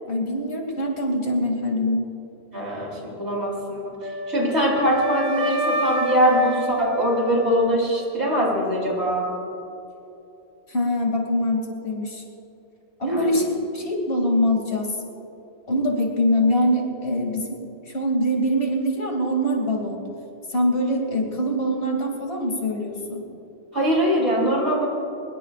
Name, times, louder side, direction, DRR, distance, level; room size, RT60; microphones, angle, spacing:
voice 1, 0.1-2.1 10.7-12.2 13.0-14.9 15.7-17.6 17.9-20.0 20.5-23.2, equal, 70° left, 1 dB, 3.1 m, -23 dB
voice 2, 2.5-9.3 13.0-13.3 23.7-24.9, equal, 85° right, -3 dB, 4.5 m, -22 dB
Wind instrument woodwind instrument, 4.0-8.1, right 1 dB, 15° right, 1.8 m, -28 dB
23.5 x 22.0 x 2.5 m, 2.9 s
omnidirectional pair, 1.1 m